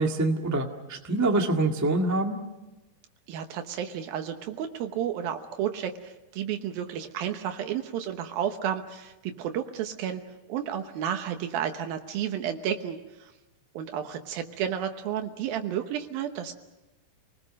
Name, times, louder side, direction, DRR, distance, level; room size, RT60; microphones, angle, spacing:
voice 1, 0.0-2.4, right 2 dB, 15° right, 2 dB, 0.5 m, -25 dB
voice 2, 3.3-10.2 10.5-13.3 13.7-16.6, right 9 dB, 80° right, 6 dB, 2.9 m, -32 dB
29.5 x 20.0 x 6.5 m, 1.1 s
omnidirectional pair, 4.2 m